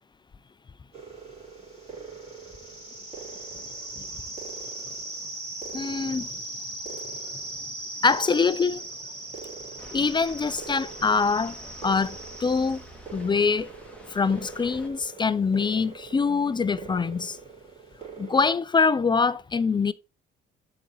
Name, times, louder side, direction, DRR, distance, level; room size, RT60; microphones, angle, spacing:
sound 1, 0.9-18.5, right 3 dB, 30° right, 3.0 m, -40 dB
voice 1, 5.7-6.3 8.0-8.8 9.9-12.8 13.1-13.7 14.1-17.4 18.2-19.9, left 5 dB, 25° left, 0.4 m, -24 dB
sound 2, 9.8-14.9, equal, 5° left, 1.5 m, -48 dB
7.4 x 4.2 x 3.8 m
cardioid pair, 90°, 20 cm